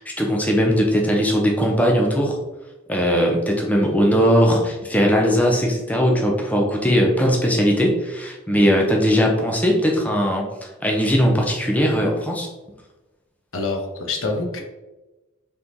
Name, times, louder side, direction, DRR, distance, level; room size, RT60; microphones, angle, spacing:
voice 1, 0.0-2.4 2.9-10.5 10.8-12.5, equal, 5° left, -1 dB, 0.6 m, -19 dB
voice 2, 13.5-14.6, left 3 dB, 80° left, 2 dB, 0.8 m, -26 dB
3.6 x 3.0 x 3.9 m, 1.1 s
head